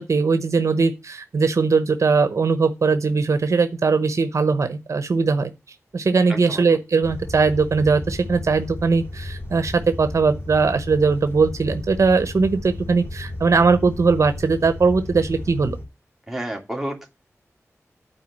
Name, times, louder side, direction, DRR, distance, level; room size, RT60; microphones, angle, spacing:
voice 1, 0.0-5.5 5.9-15.8, right 4 dB, 70° right, 0.9 m, -20 dB
voice 2, 6.3-6.6 16.3-17.1, right 1 dB, 5° right, 2.6 m, -30 dB
sound 1, 7.0-15.8, left 1 dB, 45° left, 3.4 m, -34 dB
9.1 x 4.7 x 7.5 m
wide cardioid pair, 80°, 5 cm